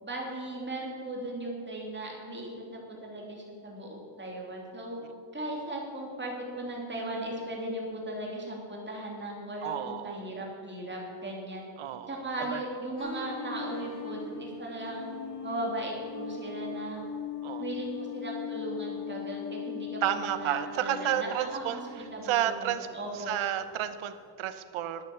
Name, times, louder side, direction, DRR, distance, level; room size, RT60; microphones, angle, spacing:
voice 1, 0.0-5.0 5.3-11.6 12.1-15.1 15.4-17.0 17.6-21.8 22.1-23.4, right 1 dB, 25° right, -2 dB, 3.0 m, -37 dB
voice 2, 9.6-10.2 11.8-12.6 17.4-17.7 20.0-21.8 22.2-22.9 23.1-25.0, right 11 dB, 85° right, 11 dB, 0.9 m, -31 dB
sound 1, 13.0-22.4 22.9-23.2, left 6 dB, 55° left, 2.4 m, -40 dB
12.0 x 10.0 x 7.2 m, 2.5 s
wide cardioid pair, 150°, 48 cm